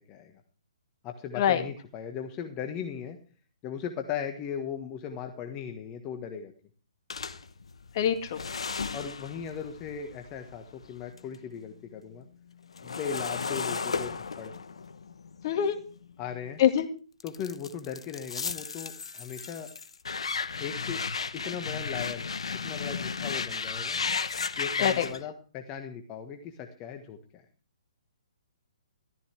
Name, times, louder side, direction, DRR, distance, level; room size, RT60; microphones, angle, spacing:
voice 1, 1.0-3.2 3.6-6.5 8.9-12.3 12.8-14.5 16.2-16.6 17.2-19.7 20.6-21.0 21.3-22.2 22.6-24.0 24.6-27.4, left 7 dB, 25° left, 5 dB, 1.5 m, -38 dB
sound 1, 7.1-11.4 11.7-16.6 17.2-25.2, left 5 dB, 65° left, 1.1 m, -35 dB
voice 2, 7.9-8.4 15.4-15.8 16.6-16.9 24.8-25.1, left 9 dB, 40° left, 7 dB, 2.0 m, -24 dB
14.5 x 14.0 x 3.4 m, 0.39 s
figure-of-eight pair, 130°, 3 cm